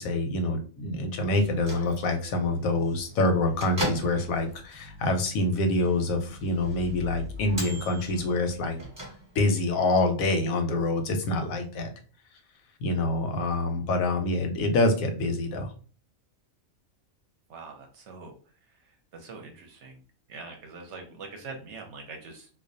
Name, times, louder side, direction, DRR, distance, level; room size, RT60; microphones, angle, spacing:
voice 1, 0.0-8.8 9.3-11.9 12.8-15.7, left 2 dB, 85° left, 5 dB, 1.0 m, -26 dB
Bell / Microwave oven, 1.4-9.7, equal, 20° right, 0.9 m, -39 dB
voice 2, 17.5-18.3 18.9-20.0 20.3-22.5, right 4 dB, 65° right, 3 dB, 0.8 m, -43 dB
2.4 x 2.1 x 2.5 m, 0.40 s
omnidirectional pair, 1.4 m